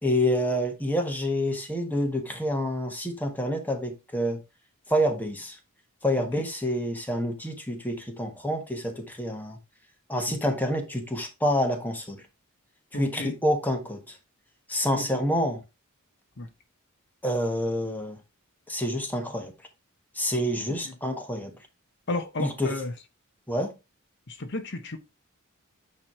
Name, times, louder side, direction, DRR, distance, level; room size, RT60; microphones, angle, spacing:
voice 1, 0.0-4.4 4.9-5.6 6.0-9.6 10.1-12.2 12.9-14.2 14.7-15.6 17.2-18.2 18.7-19.5 20.1-21.5 22.4-22.7 23.5-23.7, equal, 10° left, 1.2 m, -27 dB
voice 2, 12.9-13.3 15.0-15.1 16.4-16.5 20.8-20.9 22.1-22.9 24.3-25.0, left 2 dB, 55° left, 0.8 m, -32 dB
9.0 x 3.1 x 4.3 m
head